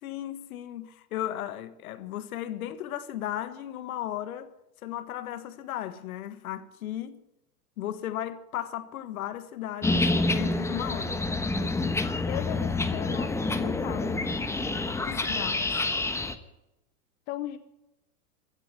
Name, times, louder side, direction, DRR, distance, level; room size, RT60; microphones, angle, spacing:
voice 1, 0.0-4.5 4.8-7.2 7.8-11.2 11.6-11.8 15.1-15.7, left 12 dB, 70° left, 1.6 m, -36 dB
sound 1, 9.8-16.3, left 2 dB, 5° left, 1.1 m, -28 dB
voice 2, 12.3-14.2 17.3-17.6, left 14 dB, 50° left, 1.1 m, -37 dB
16.0 x 9.1 x 9.7 m
hypercardioid pair, 115°, 45 cm